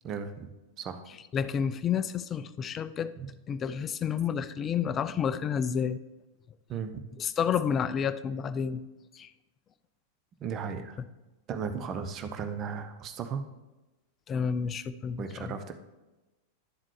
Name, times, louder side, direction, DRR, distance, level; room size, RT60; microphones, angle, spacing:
voice 1, 0.0-0.5 0.8-1.0 3.2-3.3 6.7-6.9 10.4-11.0 11.5-13.4 15.2-15.7, right 6 dB, 30° right, 8 dB, 0.7 m, -35 dB
voice 2, 1.1-3.1 3.5-6.0 7.2-8.8 9.1-9.3 11.0-11.1 14.3-15.5, left 7 dB, 25° left, 14 dB, 0.4 m, -30 dB
11.0 x 7.3 x 3.3 m, 1.1 s
figure-of-eight pair, 90°, 0 cm